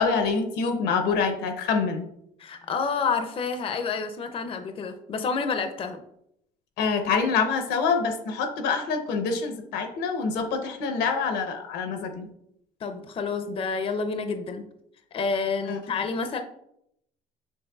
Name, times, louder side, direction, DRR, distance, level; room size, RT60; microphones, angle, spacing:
voice 1, 0.0-2.0 6.8-12.3 15.7-15.8, left 5 dB, 90° left, 5 dB, 0.8 m, -26 dB
voice 2, 2.4-6.0 12.8-14.6 15.1-16.4, left 5 dB, 35° left, 7 dB, 0.5 m, -29 dB
6.3 x 3.4 x 2.3 m, 0.75 s
cardioid pair, 110°, 17 cm